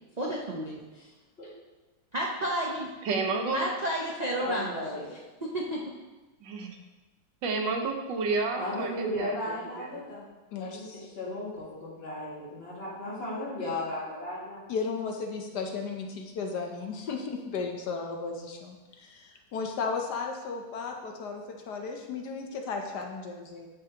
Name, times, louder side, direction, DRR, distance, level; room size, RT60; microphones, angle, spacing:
voice 1, 0.2-0.8 2.1-2.9 3.5-4.8 5.5-5.8, right 1 dB, 70° right, -3 dB, 0.4 m, -31 dB
voice 2, 3.0-3.6 6.4-6.8 7.4-10.0, right 4 dB, 85° right, 4 dB, 1.6 m, -31 dB
voice 3, 4.4-5.1 8.6-10.3 10.6-14.6, left 1 dB, 35° left, -6 dB, 2.2 m, -35 dB
voice 4, 10.5-11.1 14.7-23.7, left 4 dB, 70° left, 3 dB, 1.2 m, -35 dB
9.2 x 6.6 x 2.9 m, 1.2 s
omnidirectional pair, 1.9 m